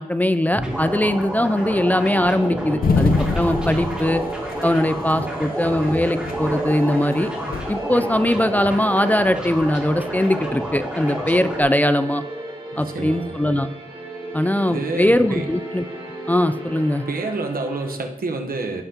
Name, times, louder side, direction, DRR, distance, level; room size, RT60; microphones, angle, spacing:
voice 1, 0.0-4.2 4.6-7.3 7.7-12.2 12.8-13.7 14.3-15.8 16.3-17.0, left 1 dB, 10° left, 11 dB, 0.3 m, -20 dB
sound 1, 0.5-11.6, equal, 5° right, 2.4 m, -29 dB
sound 2, 1.6-18.0, right 2 dB, 35° right, 1.8 m, -36 dB
sound 3, 2.8-4.8 5.1-5.2 5.8-6.5 7.3-7.7, left 3 dB, 85° left, 0.7 m, -23 dB
voice 2, 5.2-5.5 12.7-13.4 14.7-15.5 17.1-18.8, right 3 dB, 80° right, 3 dB, 0.9 m, -28 dB
15.0 x 5.6 x 2.8 m, 0.89 s
wide cardioid pair, 110°, 15 cm